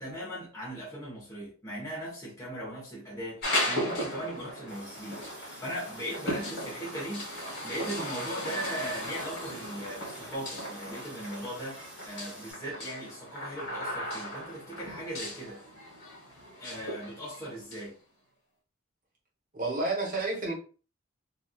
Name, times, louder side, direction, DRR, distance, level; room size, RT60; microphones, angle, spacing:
voice 1, 0.0-7.3 7.6-15.6 16.6-17.9, right 1 dB, 15° left, 1.2 m, -39 dB
sound 1, 3.4-17.8, left 1 dB, 50° left, 1.5 m, -37 dB
Water tap faucet, 4.7-12.5, right 1 dB, 5° right, 0.8 m, -50 dB
voice 2, 19.5-20.5, right 3 dB, 40° right, 1.2 m, -30 dB
3.3 x 2.6 x 2.4 m
head